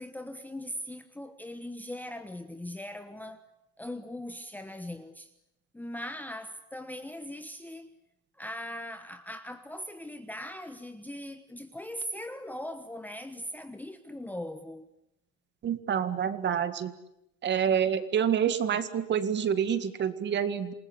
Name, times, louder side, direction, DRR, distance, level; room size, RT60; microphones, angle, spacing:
voice 1, 0.0-3.5 3.8-5.3 5.7-7.9 8.4-14.9, left 1 dB, 5° left, 1.2 m, -40 dB
voice 2, 15.6-16.9 17.4-20.7, right 8 dB, 30° right, 2.0 m, -27 dB
28.0 x 19.5 x 9.8 m
cardioid pair, 145°, 35 cm